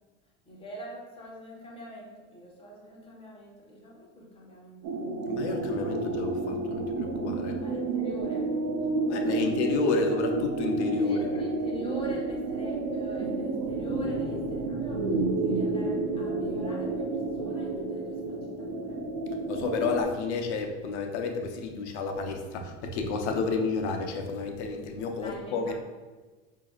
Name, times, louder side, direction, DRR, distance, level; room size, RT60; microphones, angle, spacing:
voice 1, 0.4-5.1 7.6-8.5 9.2-9.5 11.0-19.0 25.2-25.7, equal, 15° left, -3 dB, 1.2 m, -43 dB
sound 1, 4.8-20.0, right 3 dB, 60° right, 0.7 m, -30 dB
voice 2, 5.3-7.6 9.1-11.3 19.5-25.7, left 4 dB, 90° left, 4 dB, 0.7 m, -30 dB
5.1 x 2.8 x 2.4 m, 1.3 s
supercardioid pair, 110°, 33 cm